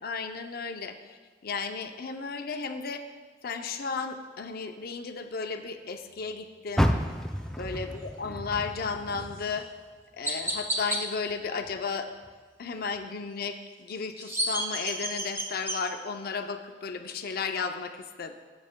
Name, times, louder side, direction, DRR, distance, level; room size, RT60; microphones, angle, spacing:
voice 1, 0.0-0.9 1.4-3.0 3.4-6.9 7.6-9.7 10.2-12.1 12.6-18.3, left 5 dB, 55° left, 6 dB, 0.6 m, -34 dB
Car, 6.7-10.0 10.4-11.8 12.2-12.3 12.9-13.0, equal, 5° left, 0.4 m, -31 dB
Chirp tweet, 9.3-9.5 10.2-11.0 14.0-15.8, right 1 dB, 15° right, 0.9 m, -30 dB
12.5 x 8.2 x 2.2 m, 1.5 s
head